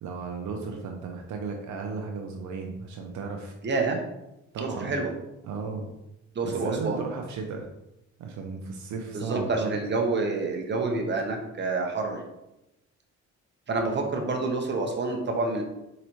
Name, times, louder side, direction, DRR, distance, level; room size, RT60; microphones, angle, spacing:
voice 1, 0.0-3.5 4.5-4.9 5.4-5.9 6.4-7.7 8.2-9.8, right 4 dB, 70° right, 2 dB, 0.6 m, -34 dB
voice 2, 3.6-4.0 4.6-5.1 6.3-7.0 9.1-12.2 13.7-15.6, right 3 dB, 35° right, 2 dB, 1.0 m, -28 dB
4.3 x 3.9 x 3.1 m, 0.91 s
cardioid pair, 90°, 30 cm